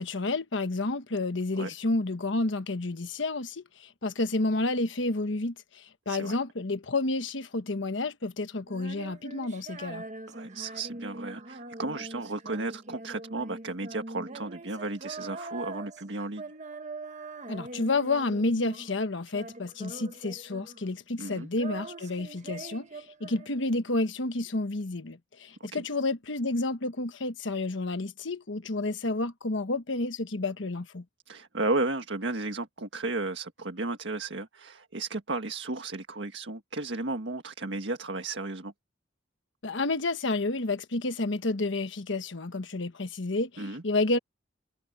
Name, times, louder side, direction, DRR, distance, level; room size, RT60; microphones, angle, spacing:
voice 1, 0.0-10.0 17.5-31.0 39.6-44.2, left 2 dB, 75° left, 1.2 m, -30 dB
Female singing, 8.7-19.0 19.3-20.9 21.2-23.9, right 2 dB, 40° right, 1.2 m, -43 dB
voice 2, 10.3-16.4 21.2-21.5 25.6-25.8 31.3-38.7 43.6-43.8, right 2 dB, 70° right, 1.7 m, -34 dB
head